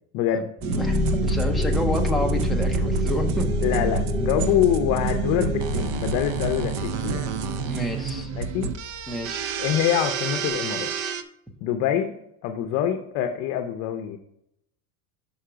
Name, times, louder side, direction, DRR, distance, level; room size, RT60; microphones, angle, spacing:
voice 1, 0.1-0.5 3.6-7.3 8.4-8.7 9.6-10.9 11.6-12.1 12.4-14.2, left 10 dB, 45° left, 7 dB, 0.6 m, -25 dB
sound 1, 0.6-9.7, left 2 dB, 15° left, 1.5 m, -28 dB
sound 2, 0.6-11.2, right 7 dB, 55° right, 0.6 m, -29 dB
voice 2, 0.7-3.5 7.6-8.3 9.1-9.5, left 1 dB, ahead, 0 dB, 0.4 m, -29 dB
5.7 x 5.6 x 4.9 m, 0.78 s
cardioid pair, 170°, 39 cm